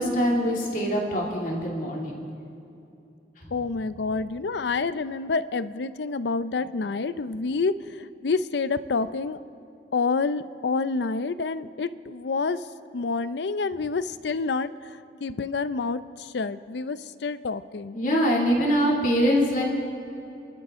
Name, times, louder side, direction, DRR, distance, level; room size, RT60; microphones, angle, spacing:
voice 1, 0.0-2.2 17.9-19.6, equal, 45° left, -2 dB, 2.6 m, -23 dB
voice 2, 3.5-9.4 9.9-12.7 12.9-18.0, left 4 dB, 75° left, 15 dB, 0.5 m, -28 dB
29.5 x 12.5 x 3.7 m, 2.7 s
head